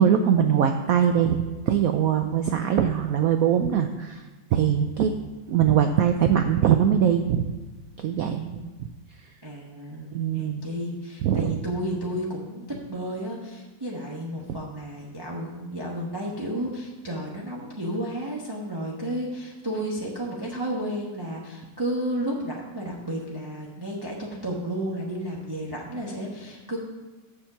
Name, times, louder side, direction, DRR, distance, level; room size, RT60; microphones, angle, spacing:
voice 1, 0.0-1.4 1.7-4.2 4.5-5.1 5.5-7.4 8.0-8.5 10.1-10.6 11.2-11.6, right 8 dB, 90° right, 7 dB, 0.7 m, -21 dB
voice 2, 8.2-8.7 9.4-26.8, right 1 dB, 15° right, -3 dB, 0.9 m, -32 dB
7.3 x 6.3 x 7.1 m, 1.2 s
omnidirectional pair, 2.1 m